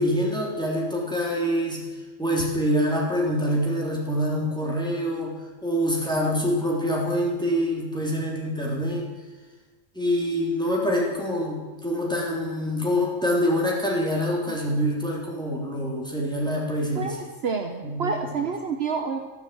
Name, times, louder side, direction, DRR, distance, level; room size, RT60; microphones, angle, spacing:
voice 1, 0.0-1.8 2.2-5.3 5.6-9.1 10.0-17.2 17.8-18.1, equal, 5° left, -3 dB, 3.6 m, -25 dB
voice 2, 16.9-19.2, right 5 dB, 55° right, 4 dB, 1.2 m, -29 dB
13.0 x 12.0 x 7.9 m, 1.3 s
omnidirectional pair, 1.3 m